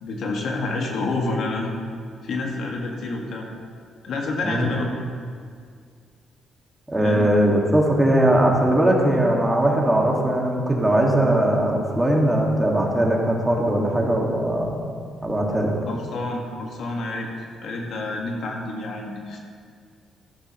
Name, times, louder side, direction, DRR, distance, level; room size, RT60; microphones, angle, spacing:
voice 1, 0.0-1.7 2.2-3.5 4.0-4.8 6.9-7.2 15.9-17.3 17.6-19.4, left 2 dB, 70° left, 0 dB, 1.7 m, -28 dB
voice 2, 6.9-14.8 15.2-15.7, right 1 dB, 15° right, -1 dB, 1.9 m, -20 dB
12.5 x 12.0 x 3.1 m, 2.1 s
cardioid pair, 90°, 0 cm